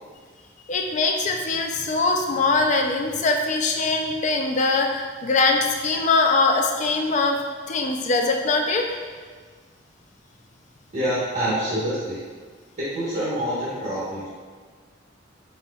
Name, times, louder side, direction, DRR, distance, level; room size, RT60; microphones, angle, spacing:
voice 1, 0.7-7.4 7.7-9.0, left 3 dB, 40° left, 3 dB, 0.4 m, -22 dB
voice 2, 10.9-12.2 12.9-14.3, right 1 dB, 45° right, -11 dB, 1.1 m, -26 dB
4.2 x 4.2 x 2.3 m, 1.5 s
head